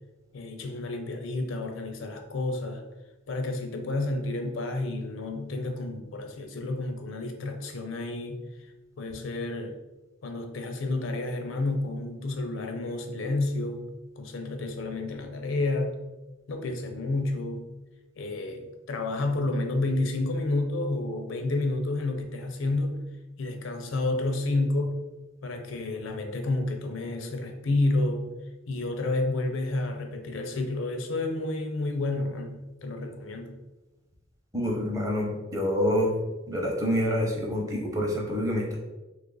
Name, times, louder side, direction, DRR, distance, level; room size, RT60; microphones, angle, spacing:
voice 1, 0.3-2.8 3.3-8.4 9.0-9.8 10.2-13.8 14.2-15.9 16.5-17.7 18.2-23.0 23.4-25.0 25.4-28.3 28.7-33.6, left 2 dB, 75° left, 5 dB, 0.5 m, -30 dB
voice 2, 34.5-36.1 36.5-38.8, equal, 15° right, -1 dB, 0.7 m, -27 dB
3.1 x 2.4 x 3.8 m, 1.1 s
head